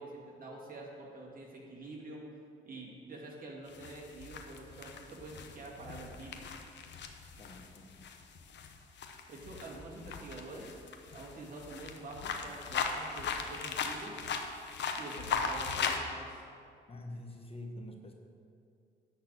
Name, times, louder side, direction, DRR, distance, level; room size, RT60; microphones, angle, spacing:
voice 1, 0.0-2.2 2.6-6.4 9.3-10.9 11.1-14.2 15.0-16.4, right 2 dB, 45° right, -2 dB, 2.2 m, -47 dB
sound 1, 3.7-16.0, left 5 dB, 65° left, 0.8 m, -38 dB
voice 2, 7.4-8.0 16.9-18.1, left 1 dB, 30° left, 3 dB, 0.9 m, -46 dB
10.5 x 4.1 x 7.6 m, 2.4 s
cardioid pair, 90°, 20 cm